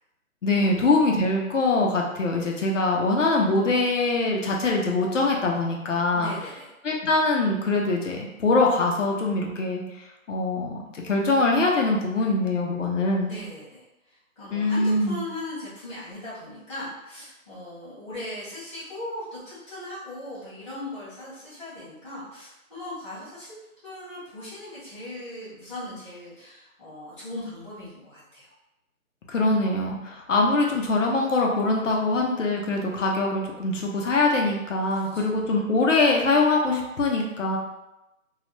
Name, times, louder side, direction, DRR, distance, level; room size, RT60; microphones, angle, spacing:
voice 1, 0.4-6.3 6.8-13.3 14.5-15.2 29.3-37.6, left 2 dB, 60° left, 0 dB, 0.7 m, -23 dB
voice 2, 6.1-6.7 13.2-23.5 23.8-28.5 34.9-35.4, left 1 dB, 20° left, -15 dB, 0.7 m, -39 dB
2.3 x 2.2 x 3.0 m, 0.94 s
hypercardioid pair, 175°, 42 cm